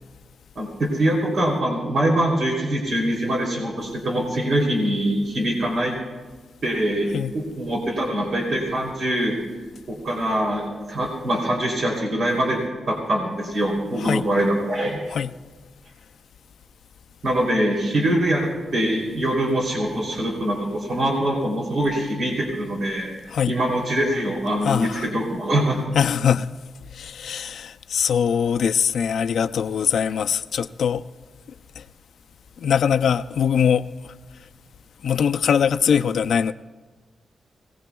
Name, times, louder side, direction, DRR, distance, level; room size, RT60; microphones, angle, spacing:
voice 1, 0.5-5.9 6.6-9.4 9.9-12.6 12.9-15.0 17.2-23.1 23.5-25.8, right 1 dB, 60° right, 3.1 m, -23 dB
voice 2, 24.6-25.1 26.0-26.5 26.9-31.0 31.8-31.9 32.6-33.9 35.0-36.5, left 7 dB, 80° left, 0.4 m, -22 dB
24.0 x 18.5 x 2.3 m
wide cardioid pair, 115°, 0 cm